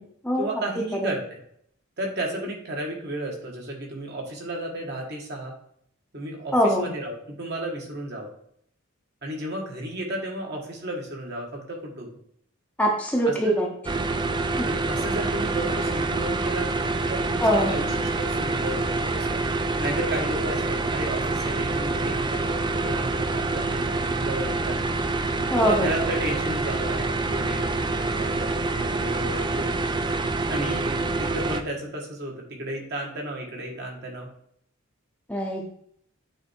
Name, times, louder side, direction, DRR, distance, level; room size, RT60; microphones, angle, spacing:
voice 1, 0.4-1.4 2.0-5.5 6.1-8.3 9.2-12.2 13.2-13.6 14.6-17.9 18.1-24.8 25.5-27.6 27.9-29.7 30.4-34.3, right 1 dB, 50° right, 0 dB, 1.7 m, -33 dB
voice 2, 6.5-6.9 12.8-13.7 14.6-14.7 17.4-17.7 25.5-25.9 35.3-35.7, equal, 5° left, 0 dB, 0.8 m, -22 dB
sound 1, 13.9-31.6, right 3 dB, 20° right, 0.4 m, -26 dB
sound 2, 14.8-31.6, equal, 80° right, 1.9 m, -43 dB
8.8 x 3.4 x 4.5 m, 0.67 s
head